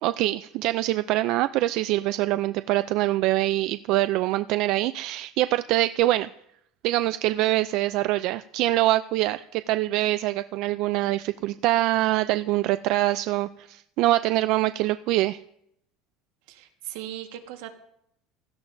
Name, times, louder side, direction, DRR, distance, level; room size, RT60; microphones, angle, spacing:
voice 1, 0.0-6.3 6.8-15.4, right 16 dB, 55° right, 12 dB, 0.3 m, -24 dB
voice 2, 16.5-17.7, right 12 dB, 80° right, 5 dB, 1.5 m, -38 dB
16.5 x 13.5 x 2.6 m, 0.75 s
cardioid pair, 160°, 0 cm